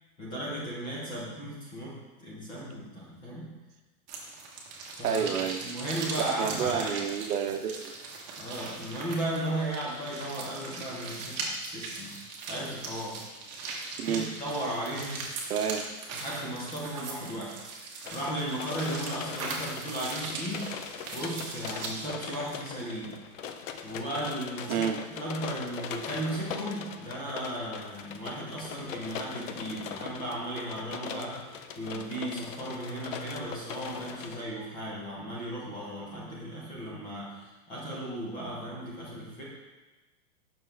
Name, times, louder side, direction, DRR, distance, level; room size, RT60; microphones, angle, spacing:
voice 1, 0.2-3.6 5.0-5.3 5.6-7.0 8.4-12.2 12.5-13.2 14.0-15.3 16.1-17.8 18.1-20.8 21.1-23.2 23.8-39.4, right 1 dB, 10° left, -5 dB, 0.6 m, -36 dB
sound 1, 4.1-22.1, right 3 dB, 30° right, 1.0 m, -39 dB
voice 2, 5.0-5.6 6.4-7.8 14.0-14.3 15.5-15.8 24.7-25.0, right 7 dB, 75° right, 7 dB, 0.9 m, -29 dB
sound 2, 18.0-34.4, left 7 dB, 60° left, 0.6 m, -41 dB
7.1 x 5.9 x 3.3 m, 1.2 s
supercardioid pair, 165°, 45 cm